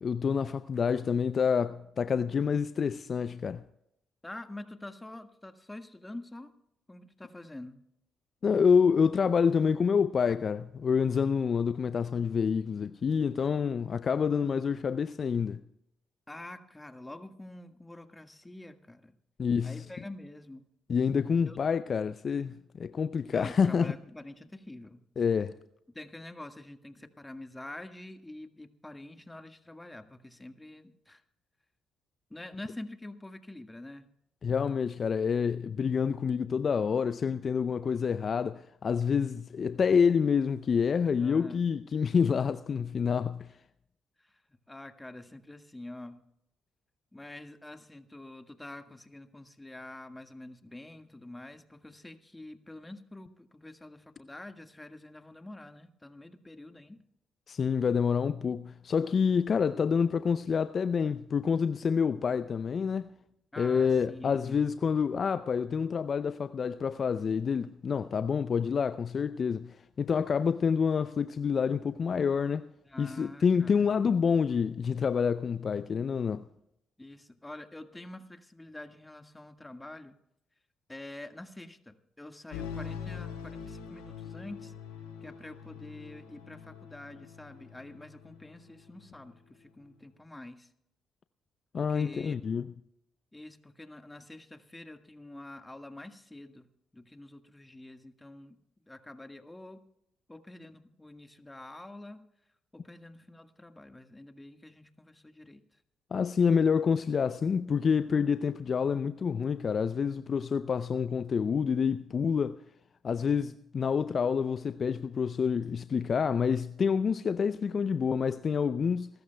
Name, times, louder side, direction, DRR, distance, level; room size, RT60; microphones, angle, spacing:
voice 1, 0.0-3.6 8.4-15.6 19.4-19.8 20.9-23.9 25.2-25.5 34.4-43.5 57.5-63.1 63.6-72.7 73.0-76.5 91.7-92.7 106.1-112.6 113.0-119.1, left 6 dB, 50° left, 0.5 m, -27 dB
voice 2, 4.2-6.5 6.9-7.8 16.3-19.2 19.6-20.7 21.5-21.6 23.2-25.0 25.9-31.2 32.3-34.1 41.2-41.7 44.2-46.2 47.1-57.0 63.5-64.6 72.8-73.9 77.0-80.2 80.9-84.7 85.2-90.7 91.7-92.4 93.3-96.7 96.9-98.6 98.9-99.8 100.3-102.3 102.7-105.8, left 1 dB, 15° left, 1.6 m, -46 dB
sound 1, 82.5-89.3, left 7 dB, 85° left, 3.5 m, -44 dB
27.5 x 13.5 x 2.3 m
hypercardioid pair, 45°, 0 cm